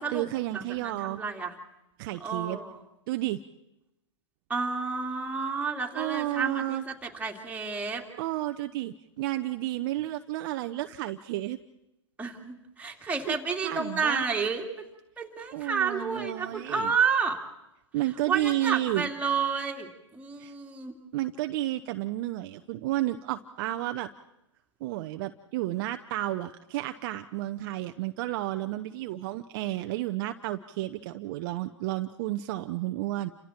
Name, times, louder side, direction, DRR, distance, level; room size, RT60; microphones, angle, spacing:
voice 1, 0.0-1.2 2.0-2.6 3.1-3.4 6.0-6.8 8.2-11.6 12.9-13.3 13.6-14.2 15.5-16.9 17.9-19.1 20.4-20.5 21.1-24.1 24.8-33.3, right 15 dB, 45° right, 8 dB, 0.8 m, -31 dB
voice 2, 0.5-1.5 2.2-2.8 4.5-8.0 12.2-14.6 15.2-17.4 18.3-20.9, right 5 dB, 10° right, 1 dB, 2.9 m, -30 dB
29.5 x 26.5 x 4.5 m, 0.89 s
hypercardioid pair, 115°, 15 cm